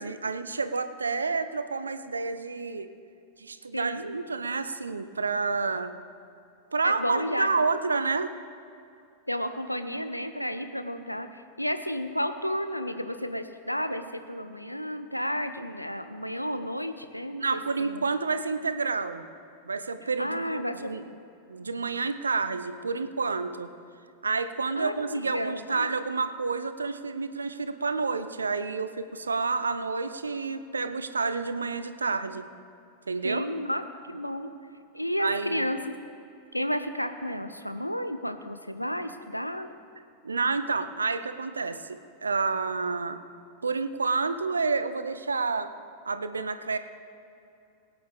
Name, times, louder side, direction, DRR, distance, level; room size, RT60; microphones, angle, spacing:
voice 1, 0.0-2.9 3.4-5.9 6.7-8.3 17.4-19.3 19.6-21.0 21.5-23.7 24.2-32.5 33.1-33.5 35.2-35.7 40.2-43.2 43.6-45.7 46.1-46.8, right 4 dB, 75° right, 11 dB, 0.6 m, -29 dB
voice 2, 3.7-4.2 6.8-7.5 9.3-18.0 20.2-20.9 24.8-25.9 33.2-33.8 34.1-34.5 34.9-35.9 36.5-39.7, equal, 90° left, 9 dB, 0.7 m, -32 dB
22.0 x 9.1 x 3.5 m, 2.6 s
figure-of-eight pair, 90°, 0 cm